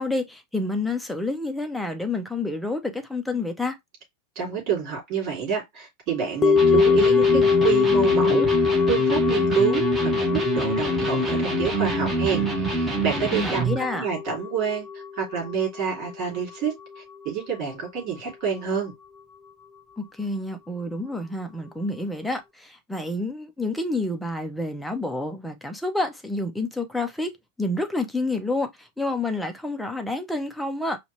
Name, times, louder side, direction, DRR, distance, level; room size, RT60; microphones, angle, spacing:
voice 1, 0.0-3.8 13.3-14.1 20.0-27.3 27.6-31.0, left 2 dB, ahead, 0.8 m, -29 dB
voice 2, 4.3-13.6 13.9-14.9 15.2-18.9, right 7 dB, 40° right, 3.1 m, -28 dB
sound 1, 6.4-16.7 17.0-17.1, left 6 dB, 20° left, 0.4 m, -23 dB
Electric guitar, 6.6-13.9, right 2 dB, 15° right, 1.5 m, -26 dB
5.0 x 2.5 x 3.2 m
figure-of-eight pair, 90°, 0 cm